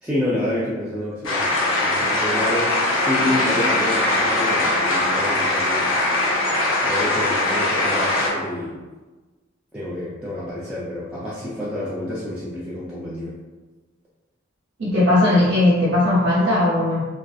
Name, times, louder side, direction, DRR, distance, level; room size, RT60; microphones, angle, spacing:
voice 1, 0.0-1.4 1.8-5.9 6.8-8.8 9.7-13.3, left 1 dB, 5° right, -9 dB, 0.3 m, -28 dB
sound 1, 1.2-8.3, left 2 dB, 85° left, 0.6 m, -21 dB
voice 2, 14.8-17.1, left 1 dB, 65° right, -9 dB, 0.6 m, -18 dB
2.4 x 2.3 x 2.3 m, 1.3 s
head